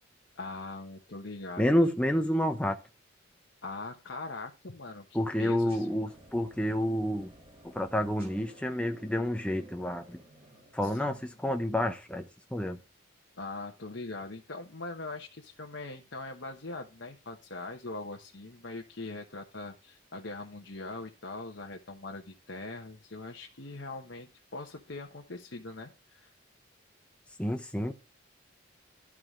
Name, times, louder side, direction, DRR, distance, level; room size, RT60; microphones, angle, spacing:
voice 1, 0.4-1.7 3.6-5.9 10.8-11.0 13.4-26.3, left 2 dB, 65° left, 1.1 m, -41 dB
voice 2, 1.6-2.8 5.1-7.3 7.6-10.2 10.7-12.8 27.4-27.9, equal, 5° left, 0.7 m, -29 dB
sound 1, 5.7-11.6, equal, 30° right, 2.1 m, -55 dB
12.5 x 4.9 x 3.6 m
head